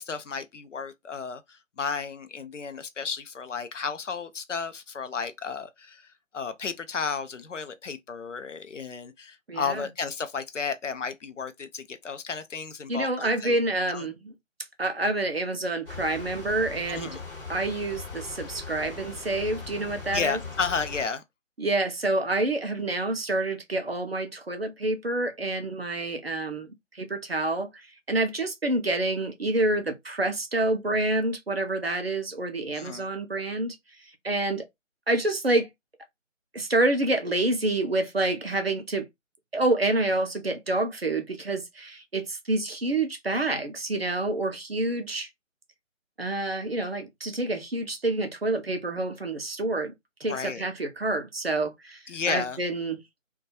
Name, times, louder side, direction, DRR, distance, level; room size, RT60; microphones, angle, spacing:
voice 1, 0.0-6.1 6.3-13.6 13.9-14.0 16.9-17.2 20.1-21.2 32.7-33.1 50.3-50.6 52.1-52.6, left 5 dB, 65° left, 0.5 m, -33 dB
voice 2, 9.5-9.8 12.9-14.3 14.8-17.1 17.5-20.4 21.6-33.8 34.2-34.6 35.1-35.7 36.5-39.1 39.5-45.3 46.2-49.9 50.2-52.0 52.3-53.0, right 2 dB, 50° right, 0.5 m, -28 dB
sound 1, 15.9-21.1, left 4 dB, 40° left, 0.9 m, -40 dB
2.3 x 2.2 x 2.6 m
figure-of-eight pair, 160°, 40 cm